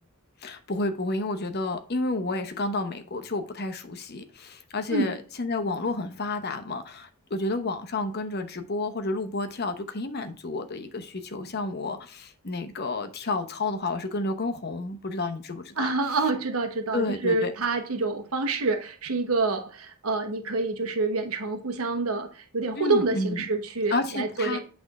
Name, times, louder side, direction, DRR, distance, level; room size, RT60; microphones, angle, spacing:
voice 1, 0.4-15.9 16.9-17.5 22.8-23.4 23.9-24.6, left 2 dB, 50° left, 0.9 m, -30 dB
voice 2, 15.8-24.6, right 3 dB, 80° right, 1.1 m, -27 dB
8.7 x 3.5 x 4.9 m
head